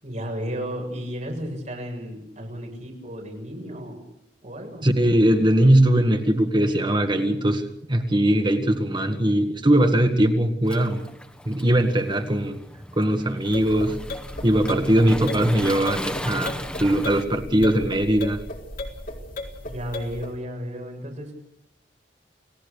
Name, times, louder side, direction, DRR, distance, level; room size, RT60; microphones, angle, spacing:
voice 1, 0.0-4.0 4.4-4.9 19.7-21.3, equal, 45° right, 1 dB, 7.2 m, -33 dB
voice 2, 4.8-7.6 7.9-11.0 11.5-12.6 13.0-14.0 14.4-18.4, right 1 dB, 25° right, 6 dB, 1.8 m, -20 dB
Waves surf, 10.6-17.2, left 1 dB, 5° left, 1.6 m, -36 dB
sound 1, 13.4-20.3, left 1 dB, 55° left, 4.0 m, -36 dB
29.5 x 18.0 x 6.8 m, 0.76 s
head